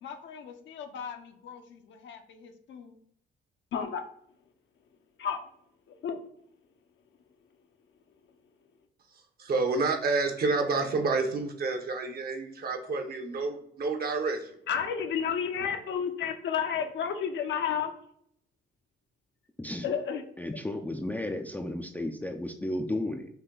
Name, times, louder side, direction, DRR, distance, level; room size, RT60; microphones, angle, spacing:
voice 1, 0.0-2.9 3.7-4.0 5.2-5.4 6.0-6.2 14.7-17.9 19.8-20.2, left 7 dB, 70° left, 5 dB, 0.7 m, -32 dB
voice 2, 9.4-14.5, right 3 dB, 50° right, 6 dB, 0.9 m, -29 dB
voice 3, 19.6-19.9 20.4-23.3, left 1 dB, 10° left, 3 dB, 0.4 m, -33 dB
5.6 x 2.2 x 3.8 m, 0.67 s
cardioid pair, 90°, 20 cm